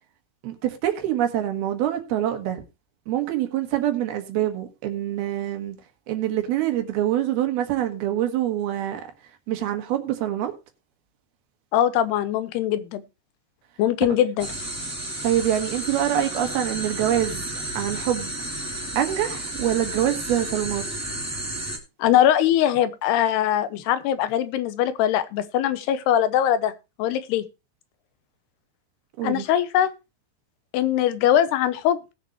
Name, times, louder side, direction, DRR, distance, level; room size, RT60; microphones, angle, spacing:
voice 1, 0.4-2.6 3.1-5.8 6.1-9.1 9.5-10.5 15.2-17.4 17.7-18.3 19.0-20.9 29.2-29.5, right 11 dB, 75° right, 3.2 m, -25 dB
voice 2, 11.7-13.0 13.8-14.5 22.0-26.7 27.0-27.4 29.2-29.9 30.7-32.1, left 11 dB, 80° left, 2.9 m, -21 dB
sound 1, 14.4-21.8, right 1 dB, 5° right, 1.4 m, -32 dB
19.0 x 6.7 x 3.0 m
omnidirectional pair, 4.7 m